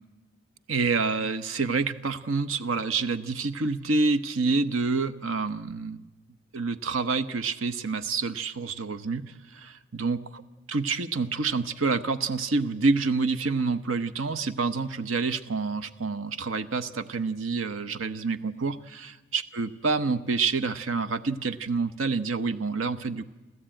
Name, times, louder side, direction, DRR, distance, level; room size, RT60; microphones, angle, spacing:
voice 1, 0.7-6.0 6.5-10.4 10.7-23.2, right 4 dB, 80° right, 11 dB, 1.0 m, -28 dB
28.0 x 14.0 x 9.0 m, 1.2 s
head